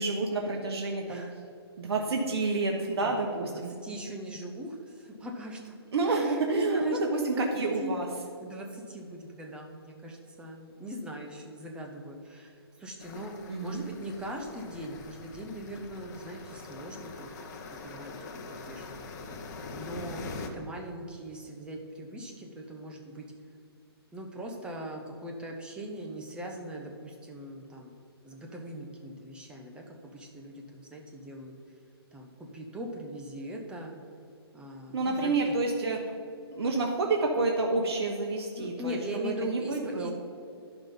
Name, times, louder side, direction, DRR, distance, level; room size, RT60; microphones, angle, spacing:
voice 1, 0.0-1.2 1.8-3.7 5.9-8.1 13.5-13.9 34.9-36.0 36.5-40.1, right 3 dB, 70° right, 1 dB, 1.2 m, -29 dB
voice 2, 3.0-5.7 6.1-7.5 7.8-7.9 8.4-13.3 13.6-17.3 17.8-18.2 18.5-19.4 19.7-23.2 24.1-27.9 28.2-31.5 32.1-33.9 34.5-35.3 38.6-40.1, right 1 dB, 5° right, 1 dB, 1.1 m, -40 dB
sound 1, 13.0-20.5, left 4 dB, 45° left, 1.1 m, -43 dB
11.0 x 5.9 x 5.4 m, 2.5 s
hypercardioid pair, 145°, 14 cm